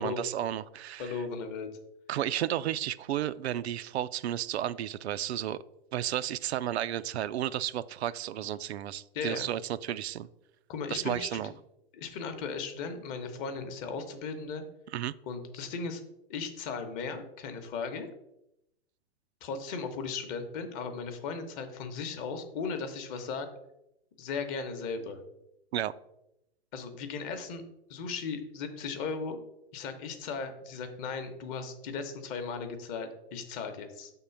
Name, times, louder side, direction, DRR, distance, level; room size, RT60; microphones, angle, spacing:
voice 1, 0.0-1.1 2.1-5.6 5.9-10.3 10.9-11.5 14.9-15.1 25.7-25.9, right 11 dB, 80° right, 15 dB, 0.5 m, -32 dB
voice 2, 1.0-1.7 9.1-9.5 10.7-11.4 11.9-14.6 15.3-16.0 16.3-18.1 19.4-23.5 24.2-25.2 26.7-27.6 27.9-29.4 29.7-34.1, left 5 dB, 25° left, 7 dB, 0.8 m, -36 dB
6.1 x 3.7 x 5.6 m, 0.84 s
hypercardioid pair, 150°, 32 cm